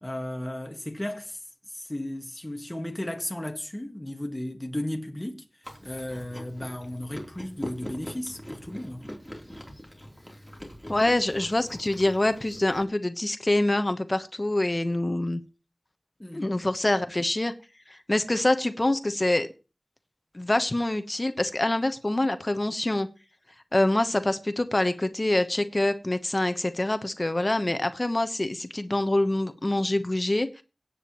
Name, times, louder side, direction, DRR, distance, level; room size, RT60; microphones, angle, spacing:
voice 1, 0.0-1.4 1.7-5.4 5.8-9.0 16.2-16.5, left 1 dB, 20° left, 1.6 m, -34 dB
Chewing mastication, 5.6-12.8, equal, ahead, 3.3 m, -43 dB
voice 2, 10.9-15.4 16.3-17.5 17.9-19.5 20.3-23.1 23.7-30.6, left 1 dB, 35° left, 1.0 m, -25 dB
17.5 x 8.7 x 3.0 m
wide cardioid pair, 50°, 0 cm